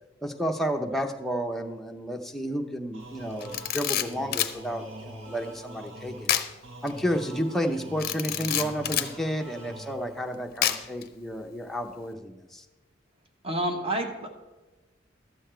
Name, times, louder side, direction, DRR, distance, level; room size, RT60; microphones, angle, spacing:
voice 1, 0.2-6.3 6.8-12.6, equal, ahead, 3 dB, 0.6 m, -31 dB
sound 1, 2.9-10.3, right 1 dB, 75° right, 1.3 m, -44 dB
Camera, 3.4-4.6 6.3-6.5 6.9-7.0 8.0-9.1 10.6-11.0, left 11 dB, 50° left, 0.6 m, -27 dB
voice 2, 13.4-14.3, right 1 dB, 30° right, 4 dB, 1.2 m, -29 dB
12.0 x 7.1 x 4.4 m, 1.1 s
head